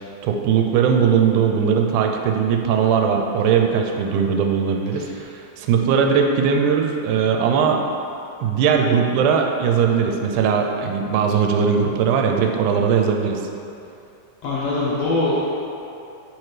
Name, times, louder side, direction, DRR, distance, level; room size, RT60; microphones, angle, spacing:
voice 1, 0.2-7.8 8.4-13.4, right 6 dB, 85° right, 3 dB, 2.0 m, -19 dB
voice 2, 14.4-15.5, left 2 dB, 70° left, -6 dB, 1.6 m, -22 dB
9.6 x 4.3 x 3.2 m, 2.7 s
omnidirectional pair, 3.6 m